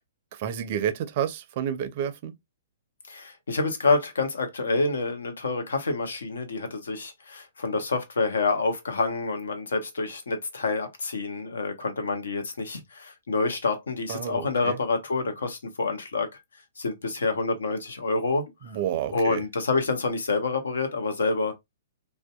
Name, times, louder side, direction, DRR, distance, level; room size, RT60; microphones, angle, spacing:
voice 1, 0.3-2.3 14.1-14.8 18.6-19.4, right 9 dB, 45° right, 0.4 m, -30 dB
voice 2, 3.1-16.3 16.8-18.5 19.1-21.5, left 3 dB, 75° left, 0.7 m, -27 dB
2.6 x 2.2 x 2.2 m
hypercardioid pair, 120°, 0 cm